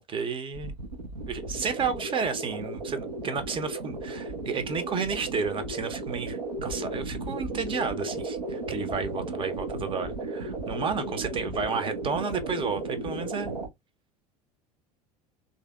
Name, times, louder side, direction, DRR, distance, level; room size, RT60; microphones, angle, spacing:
voice 1, 0.1-0.7 1.3-13.6, right 5 dB, 25° right, 0.7 m, -32 dB
sound 1, 0.5-13.7, right 2 dB, 85° right, 0.9 m, -35 dB
3.4 x 2.7 x 2.3 m
figure-of-eight pair, 75°, 20 cm